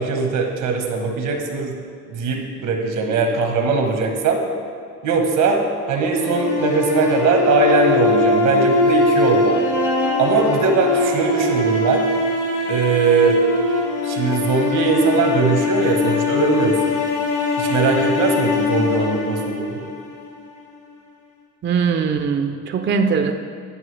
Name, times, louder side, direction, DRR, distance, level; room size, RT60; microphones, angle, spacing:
voice 1, 0.0-1.7 2.1-4.4 5.0-5.6 5.9-9.6 10.2-12.0 12.7-13.4 14.0-17.0 17.6-19.9, right 4 dB, 85° right, 3 dB, 1.1 m, -20 dB
sound 1, 6.1-20.3, left 3 dB, 85° left, 1.4 m, -21 dB
voice 2, 21.6-23.3, right 6 dB, 40° right, 5 dB, 0.5 m, -20 dB
9.9 x 5.4 x 3.3 m, 2.3 s
cardioid pair, 90°, 30 cm